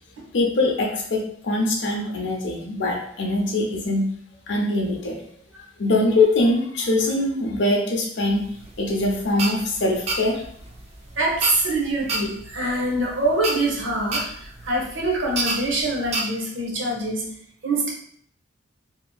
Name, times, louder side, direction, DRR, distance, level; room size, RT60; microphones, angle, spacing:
voice 1, 0.3-4.1 4.5-5.2 5.8-8.5 8.8-10.4, left 2 dB, 65° left, 0 dB, 0.6 m, -22 dB
sound 1, 8.4-16.2, right 2 dB, 35° right, 0.4 m, -30 dB
voice 2, 11.2-17.3 17.6-17.9, right 2 dB, 75° right, -1 dB, 0.7 m, -24 dB
2.9 x 2.5 x 2.2 m, 0.63 s
head